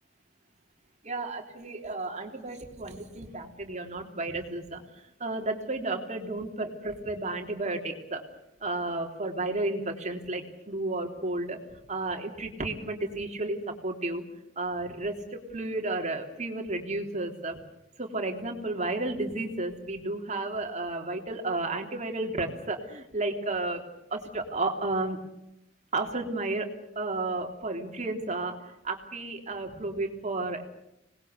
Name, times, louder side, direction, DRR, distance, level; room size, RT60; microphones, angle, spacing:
voice 1, 1.0-8.2 8.6-11.6 11.9-14.2 14.6-17.6 18.0-23.8 24.1-25.2 25.9-26.7 27.0-30.7, right 2 dB, 40° right, 3 dB, 3.5 m, -32 dB
26.0 x 20.5 x 8.1 m, 0.86 s
head